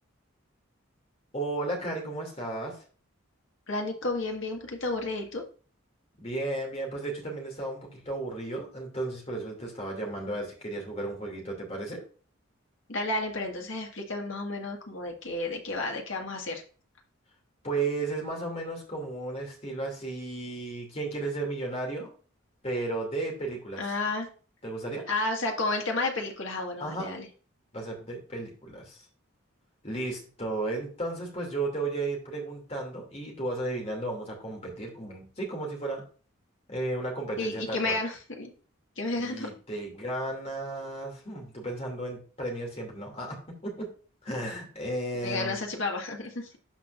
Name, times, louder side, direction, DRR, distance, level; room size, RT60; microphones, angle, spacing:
voice 1, 1.3-2.8 6.2-12.0 17.6-22.1 22.6-23.8 24.6-25.0 26.8-27.1 27.7-29.0 29.8-36.0 36.7-38.0 39.2-43.4 43.6-43.9 44.2-45.6, right 2 dB, 30° left, 0 dB, 2.6 m, -34 dB
voice 2, 3.7-5.4 12.9-16.6 23.8-24.3 25.1-27.3 37.4-38.5 39.0-39.5 45.2-46.6, left 2 dB, 65° left, 2 dB, 1.8 m, -31 dB
12.5 x 4.8 x 2.5 m, 0.39 s
head